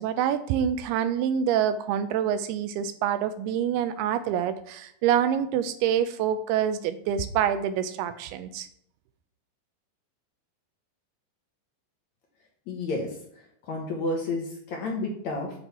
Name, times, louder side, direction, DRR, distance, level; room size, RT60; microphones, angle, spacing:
voice 1, 0.0-8.7, right 9 dB, 85° right, 11 dB, 2.6 m, -26 dB
voice 2, 12.7-13.1 13.7-15.5, left 2 dB, 60° left, 0 dB, 2.1 m, -30 dB
7.9 x 6.9 x 4.3 m, 0.69 s
omnidirectional pair, 4.6 m